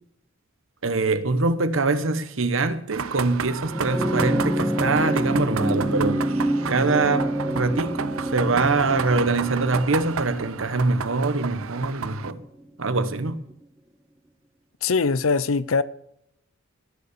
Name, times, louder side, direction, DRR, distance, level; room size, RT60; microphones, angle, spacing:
voice 1, 0.8-6.4 6.7-12.4 12.8-13.4, right 3 dB, 70° right, 1.1 m, -24 dB
sound 1, 2.9-12.3, right 6 dB, 90° right, 0.7 m, -32 dB
sound 2, 3.6-12.3 13.5-13.6, right 1 dB, 10° right, 1.1 m, -28 dB
voice 2, 14.8-15.8, left 4 dB, 80° left, 0.7 m, -21 dB
19.0 x 7.0 x 6.8 m
head